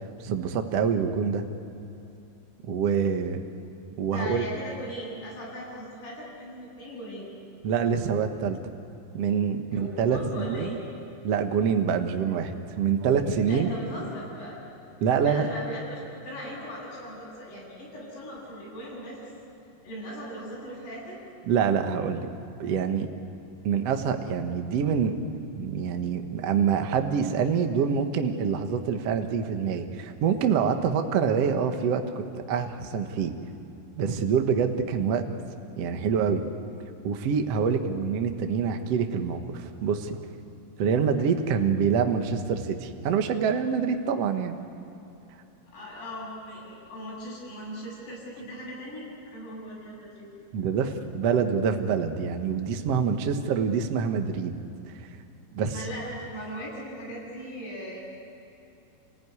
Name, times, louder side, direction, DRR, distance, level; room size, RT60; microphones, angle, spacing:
voice 1, 0.2-1.4 2.6-3.4 4.0-4.5 7.6-8.6 9.1-10.8 11.2-13.7 15.0-15.5 21.5-22.3 22.6-23.1 23.6-25.1 25.6-32.2 32.5-33.3 34.0-35.2 35.8-36.4 37.0-40.2 40.8-44.6 50.5-54.6 54.9-55.1 55.5-55.8, right 6 dB, 65° right, 6 dB, 1.6 m, -26 dB
voice 2, 4.1-7.3 9.7-10.8 13.5-14.6 15.2-19.3 19.8-21.2 41.1-41.5 45.7-50.3 55.7-58.0, equal, 55° left, -6 dB, 9.0 m, -39 dB
29.5 x 16.5 x 9.6 m, 2.9 s
omnidirectional pair, 4.8 m